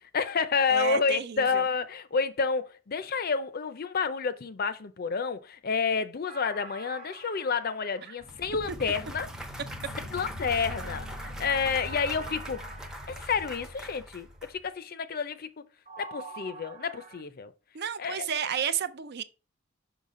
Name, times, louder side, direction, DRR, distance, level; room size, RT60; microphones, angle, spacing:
voice 1, 0.1-9.3 10.1-12.6 13.1-15.6 16.0-17.5 18.0-18.3, left 5 dB, 45° left, 0.5 m, -29 dB
voice 2, 0.7-1.6 8.0-8.2 17.7-19.2, right 7 dB, 50° right, 0.5 m, -31 dB
sound 1, 6.3-9.1 10.4-14.2 15.9-17.2, right 3 dB, 35° right, 1.1 m, -47 dB
sound 2, 8.2-14.7, left 1 dB, 70° right, 1.1 m, -42 dB
Clapping / Cheering / Applause, 8.3-14.5, right 1 dB, 5° right, 0.6 m, -44 dB
5.7 x 5.7 x 3.7 m
head